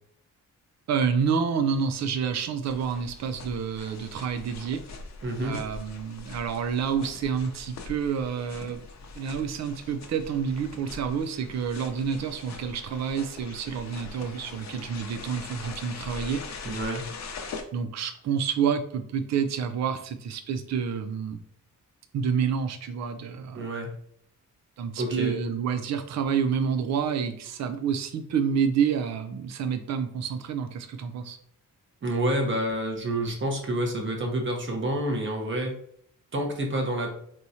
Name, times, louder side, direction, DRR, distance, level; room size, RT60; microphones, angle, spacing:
voice 1, 0.9-4.8 5.4-8.8 9.2-16.4 17.7-21.4 22.1-23.7 24.8-31.4, right 7 dB, 55° right, 8 dB, 0.5 m, -28 dB
sound 1, 2.6-17.6, left 4 dB, 55° left, 0.7 m, -42 dB
voice 2, 5.2-5.6 16.4-17.1 23.5-24.0 25.0-25.4 32.0-35.8 36.3-37.2, right 1 dB, 35° right, 1 dB, 1.0 m, -28 dB
4.8 x 3.0 x 2.7 m, 0.66 s
wide cardioid pair, 150°, 33 cm